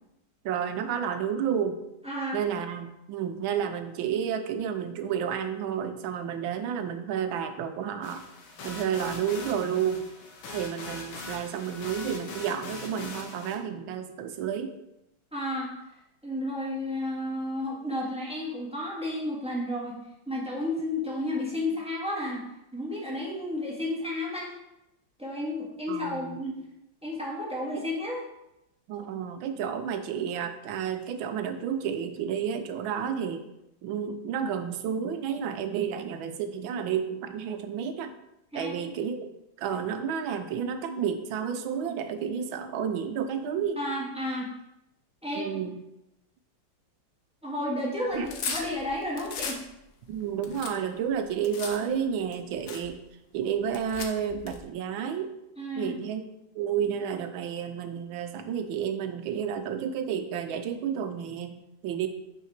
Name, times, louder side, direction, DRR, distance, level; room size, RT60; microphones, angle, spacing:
voice 1, 0.4-1.8 2.3-8.3 8.6-10.1 10.5-14.8 25.9-26.4 27.7-27.8 28.9-33.5 33.8-38.1 38.5-39.3 39.6-43.8 45.3-45.8 48.1-48.3 50.1-53.0 53.3-55.3 55.8-56.2 56.5-62.1, right 8 dB, 85° right, 9 dB, 1.5 m, -31 dB
voice 2, 2.0-2.4 15.3-15.7 16.2-20.0 20.3-22.4 22.7-24.6 25.2-26.6 27.0-28.2 38.5-38.7 43.8-44.5 45.2-45.6 47.4-49.6 55.6-55.9, left 1 dB, 5° right, -4 dB, 1.5 m, -32 dB
sound 1, 8.0-13.6, left 3 dB, 85° left, 1.7 m, -41 dB
sound 2, 48.1-49.6 50.1-51.8 52.3-52.4 52.7-52.9 53.7-54.6, left 5 dB, 60° left, 1.2 m, -36 dB
5.6 x 4.7 x 5.8 m, 0.88 s
omnidirectional pair, 2.1 m